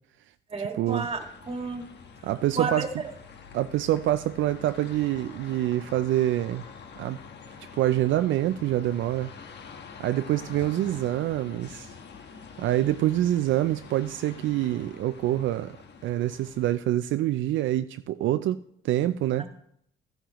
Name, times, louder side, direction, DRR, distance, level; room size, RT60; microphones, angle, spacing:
voice 1, 0.5-1.9 2.6-2.9 19.4-19.5, right 3 dB, 30° right, 4 dB, 1.8 m, -32 dB
sound 1, 0.9-16.8, left 6 dB, 60° left, 1.3 m, -46 dB
voice 2, 2.2-2.9 3.5-6.6 7.0-7.2 7.8-9.3 10.0-11.9 12.6-15.8 16.0-19.5, right 13 dB, 75° right, 11 dB, 0.4 m, -26 dB
13.5 x 10.0 x 3.0 m, 0.71 s
cardioid pair, 90°, 20 cm